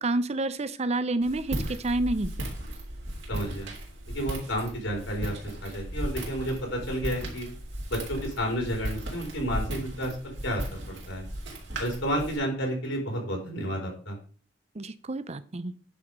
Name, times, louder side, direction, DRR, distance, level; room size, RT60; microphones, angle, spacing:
voice 1, 0.0-2.3 14.8-15.7, right 2 dB, 35° right, 14 dB, 0.6 m, -29 dB
Walk footsteps, 1.2-12.4, right 1 dB, 65° right, 3.2 m, -36 dB
voice 2, 3.3-3.7 4.1-7.5 7.9-11.2 11.8-14.2, equal, 80° left, 1 dB, 4.3 m, -31 dB
9.8 x 4.9 x 5.4 m, 0.41 s
head